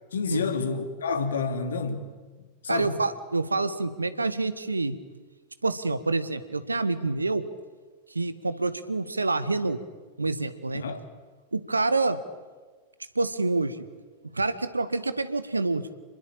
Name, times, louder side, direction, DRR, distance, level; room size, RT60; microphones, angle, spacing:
voice 1, 0.1-2.2 2.6-3.0 10.7-11.0, left 5 dB, 65° left, 2.8 m, -29 dB
voice 2, 2.7-5.0 5.6-7.4 8.1-9.8 10.2-10.8 11.5-12.2 13.1-13.9 14.3-15.9, right 3 dB, 80° right, 1.6 m, -27 dB
29.0 x 21.0 x 8.9 m
figure-of-eight pair, 90°, 0 cm